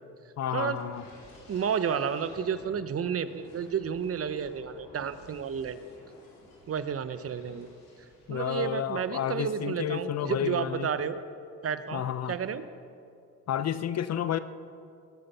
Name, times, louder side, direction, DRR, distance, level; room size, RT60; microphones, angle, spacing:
voice 1, 0.4-1.0 8.3-10.9 11.9-12.4 13.5-14.4, left 9 dB, 50° left, 13 dB, 0.7 m, -31 dB
sound 1, 0.6-9.1 9.5-9.8, left 2 dB, 85° left, 3.7 m, -54 dB
voice 2, 1.5-5.8 6.7-7.7 8.3-11.2 11.6-12.6, right 7 dB, 45° right, 12 dB, 0.8 m, -31 dB
18.5 x 7.8 x 5.6 m, 2.5 s
supercardioid pair, 70°, 33 cm